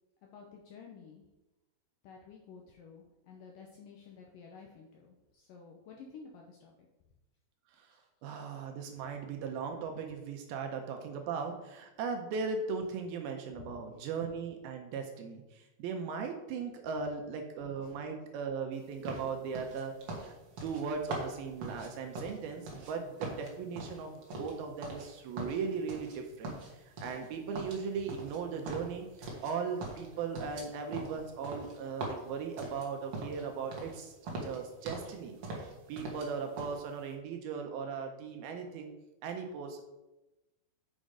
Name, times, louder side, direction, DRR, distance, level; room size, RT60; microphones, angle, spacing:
voice 1, 0.3-1.2 2.0-6.7 7.9-8.0 13.5-13.8 17.8-17.9, left 5 dB, 75° left, 0 dB, 2.0 m, -52 dB
voice 2, 8.2-20.3 20.6-34.1 34.4-38.9 39.2-39.8, right 5 dB, 75° right, 4 dB, 2.4 m, -38 dB
sound 1, 19.0-22.9 23.2-25.1 25.4-26.2 26.4-27.3 27.5-29.5 29.8-33.4 33.7-34.0 34.2-35.1 35.4-36.3 36.6-36.8, right 2 dB, 55° right, 1.6 m, -42 dB
6.6 x 6.3 x 5.0 m, 0.99 s
omnidirectional pair, 4.8 m